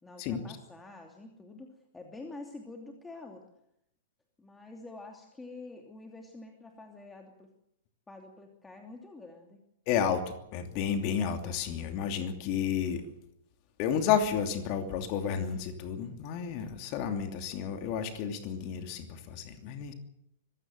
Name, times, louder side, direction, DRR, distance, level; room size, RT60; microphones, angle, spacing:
voice 1, 0.0-3.4 4.4-7.5 8.1-9.6, left 2 dB, 10° left, 2 dB, 2.9 m, -47 dB
voice 2, 9.9-13.1 13.8-19.9, left 8 dB, 40° left, 6 dB, 2.8 m, -31 dB
25.0 x 16.0 x 7.8 m, 0.79 s
figure-of-eight pair, 105°, 0 cm